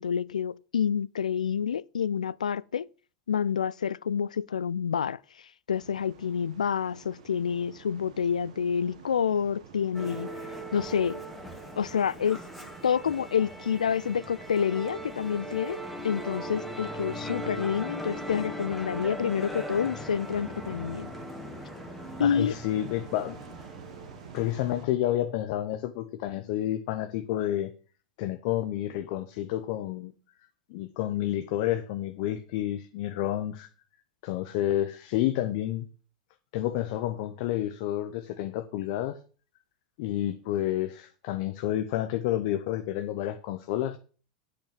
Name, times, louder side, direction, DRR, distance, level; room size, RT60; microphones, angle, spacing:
voice 1, 0.0-2.9 3.3-5.2 5.7-10.3 10.7-11.2 11.8-12.4 12.8-21.1 22.2-22.5, left 7 dB, 90° left, 0.3 m, -28 dB
sound 1, 5.7-24.9, right 8 dB, 75° right, 1.4 m, -50 dB
Musical instrument, 9.9-24.6, equal, ahead, 2.3 m, -39 dB
voice 2, 22.2-23.4 24.3-27.7 28.2-30.1 30.7-33.7 34.2-35.9 36.5-39.2 40.0-44.0, left 13 dB, 60° left, 0.8 m, -30 dB
8.2 x 6.0 x 6.4 m
hypercardioid pair, 90°, 4 cm